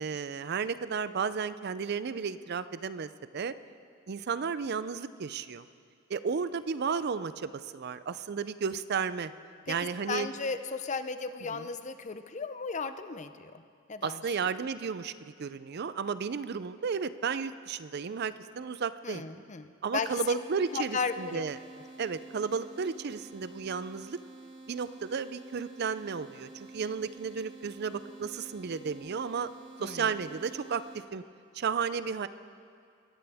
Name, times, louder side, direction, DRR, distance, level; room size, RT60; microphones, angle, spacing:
voice 1, 0.0-3.5 4.1-5.7 6.1-9.3 9.7-10.3 11.5-11.7 14.0-19.3 19.8-21.6 22.0-24.2 24.7-29.5 29.8-30.8 31.1-31.2 31.5-32.3, right 5 dB, 50° right, 14 dB, 0.5 m, -33 dB
voice 2, 9.7-13.6 13.9-14.2 19.0-19.7 19.9-20.4 20.7-21.4 29.8-30.1, left 5 dB, 35° left, 10 dB, 0.6 m, -35 dB
sound 1, 19.9-31.0, right 3 dB, 35° right, 2.1 m, -50 dB
23.0 x 14.5 x 3.5 m, 2.3 s
head